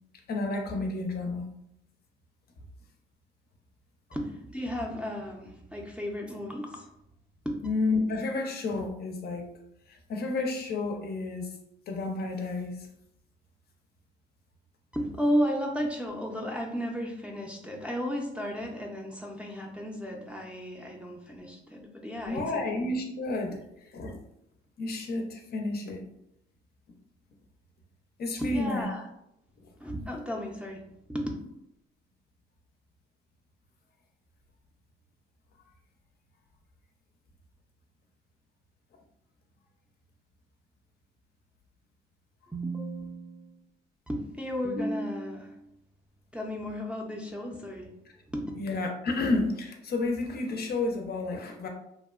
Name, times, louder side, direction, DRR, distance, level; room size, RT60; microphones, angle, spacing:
voice 1, 0.3-1.4 7.6-9.5 9.9-11.5 11.9-12.9 22.2-23.6 23.9-24.2 24.8-26.0 28.2-28.9 48.6-51.7, left 3 dB, 50° left, 3 dB, 0.5 m, -31 dB
voice 2, 4.1-6.8 7.4-7.6 14.9-22.7 28.4-29.1 29.8-30.8 31.1-31.3 42.5-43.6 44.1-45.7 46.3-47.9 48.3-48.5, equal, 5° right, -1 dB, 0.4 m, -33 dB
2.7 x 2.1 x 2.3 m, 0.78 s
cardioid pair, 90°, 20 cm